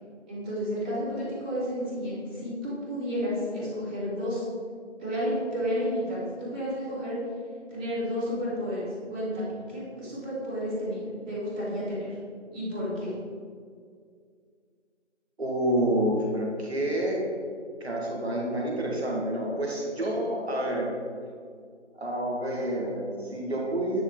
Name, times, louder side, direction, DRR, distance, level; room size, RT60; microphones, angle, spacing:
voice 1, 0.3-4.4 5.0-7.2 7.7-12.2 12.5-13.1 20.0-20.1, equal, 5° right, -17 dB, 2.2 m, -31 dB
voice 2, 15.4-17.2 17.8-20.9 22.0-24.0, right 1 dB, 60° right, -2 dB, 2.1 m, -28 dB
9.9 x 6.0 x 3.9 m, 2.1 s
figure-of-eight pair, 170°, 36 cm